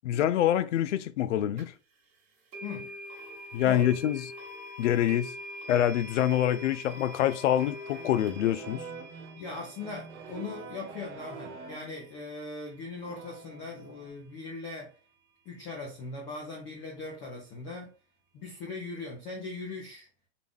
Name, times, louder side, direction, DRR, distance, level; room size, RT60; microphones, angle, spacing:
voice 1, 0.0-1.7 3.5-4.2 4.8-5.3 5.7-8.9, left 11 dB, 90° left, 0.5 m, -26 dB
sound 1, 1.6-1.7 2.5-13.5, left 1 dB, 20° right, 1.1 m, -45 dB
voice 2, 2.6-2.9 3.6-4.0 9.4-14.9 15.5-17.9 18.3-20.1, left 3 dB, 20° left, 0.5 m, -40 dB
sound 2, 7.0-12.0 13.0-14.1, right 5 dB, 80° right, 1.1 m, -45 dB
3.9 x 2.3 x 3.4 m
supercardioid pair, 160°, 35 cm